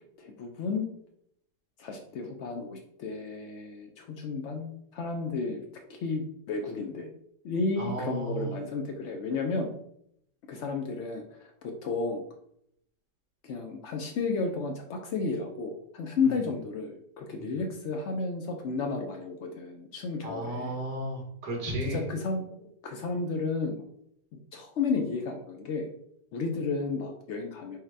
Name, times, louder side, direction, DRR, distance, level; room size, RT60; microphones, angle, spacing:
voice 1, 0.2-0.9 1.8-5.6 5.9-7.1 7.4-9.7 10.5-12.2 13.4-20.8 21.8-23.9 24.3-25.9 26.3-27.8, left 4 dB, 90° left, 3 dB, 0.6 m, -32 dB
voice 2, 7.8-8.4 20.2-22.0, right 1 dB, 70° right, -1 dB, 1.9 m, -33 dB
4.9 x 2.1 x 4.5 m, 0.72 s
omnidirectional pair, 1.8 m